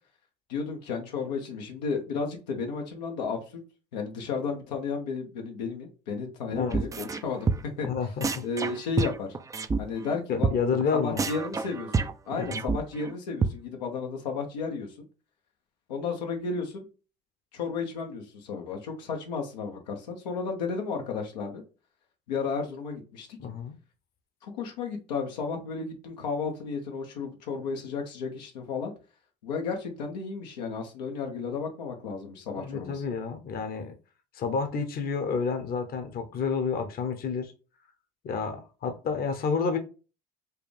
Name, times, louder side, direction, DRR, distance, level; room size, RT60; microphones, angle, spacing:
voice 1, 0.5-3.6 3.9-7.5 7.8-7.9 8.4-9.3 9.8-10.5 11.0-14.9 15.9-16.8 17.5-21.6 22.3-23.3 24.4-28.9 29.4-33.0, left 5 dB, 90° left, 0.9 m, -33 dB
voice 2, 6.5-6.8 7.8-8.4 10.3-11.2 12.3-12.6 23.4-23.7 32.6-33.9 34.3-37.5 38.2-39.8, left 5 dB, 45° left, 0.8 m, -29 dB
sound 1, 6.7-7.2 7.5-7.9 8.2-9.8 10.1-10.2 10.4-10.6 10.8-10.9 11.2-13.1 13.4-13.5, right 4 dB, 15° right, 0.3 m, -28 dB
4.6 x 2.4 x 3.3 m
hypercardioid pair, 80°, 21 cm